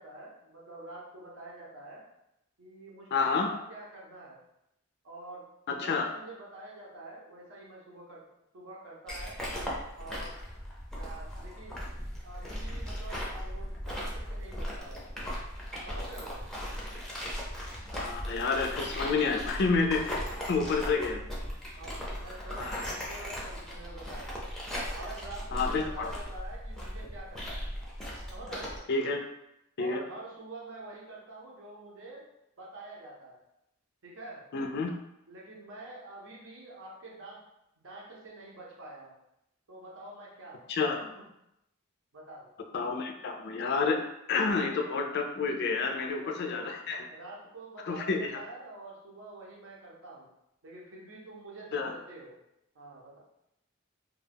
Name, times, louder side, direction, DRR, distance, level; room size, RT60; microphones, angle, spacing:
voice 1, 0.0-2.0 2.6-4.4 5.0-5.5 5.8-8.2 8.5-9.4 10.0-10.4 10.9-11.8 12.2-15.1 15.8-16.4 20.8-21.1 21.7-24.6 24.9-27.7 28.3-28.8 29.8-32.2 32.6-33.4 34.0-34.5 35.3-37.5 37.8-39.2 39.7-40.7 41.0-41.3 42.1-42.5 46.0-46.7 47.1-50.3 50.6-52.4 52.7-53.2, right 2 dB, 65° right, -3 dB, 0.7 m, -47 dB
voice 2, 3.1-3.5 5.7-6.1 17.9-20.2 20.5-21.2 22.6-22.8 25.5-26.1 28.9-29.2 29.8-30.0 34.5-34.9 40.7-41.0 42.7-44.0 44.3-47.0 47.8-48.4 51.7-51.9, left 4 dB, 55° left, 4 dB, 0.4 m, -29 dB
sound 1, 9.1-28.8, equal, ahead, 0.5 m, -38 dB
2.3 x 2.2 x 3.4 m, 0.83 s
head